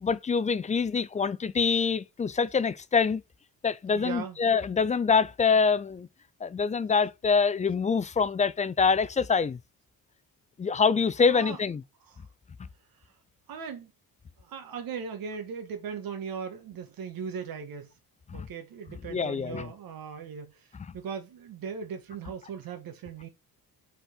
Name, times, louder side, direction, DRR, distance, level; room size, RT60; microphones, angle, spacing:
voice 1, 0.0-3.2 3.6-6.1 6.4-9.6 10.6-11.8 18.3-18.5 19.1-19.7, left 5 dB, 20° left, 0.4 m, -25 dB
voice 2, 3.9-4.4 11.3-11.6 12.1-12.2 13.5-13.9 14.4-17.9 18.3-23.3, right 6 dB, 65° right, 1.5 m, -38 dB
5.7 x 4.4 x 5.4 m
cardioid pair, 145°, 37 cm